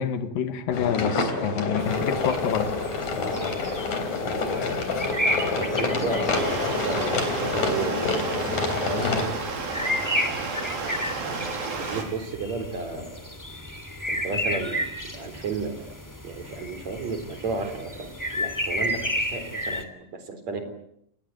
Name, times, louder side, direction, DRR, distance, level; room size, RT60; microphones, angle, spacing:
voice 1, 0.0-2.7 9.0-9.3, left 8 dB, 75° left, 9 dB, 3.6 m, -27 dB
sound 1, 0.7-9.3, left 3 dB, 55° left, 5.0 m, -27 dB
sound 2, 1.8-19.8, equal, 5° left, 2.5 m, -33 dB
voice 2, 5.1-8.1 8.3-9.4 9.7-10.2 11.3-13.2 14.1-14.8 15.1-15.9 16.2-20.7, right 4 dB, 50° right, 8 dB, 5.1 m, -33 dB
Stream, 6.3-12.0, right 4 dB, 90° right, 6.1 m, -32 dB
28.5 x 21.0 x 9.6 m, 0.74 s
omnidirectional pair, 4.0 m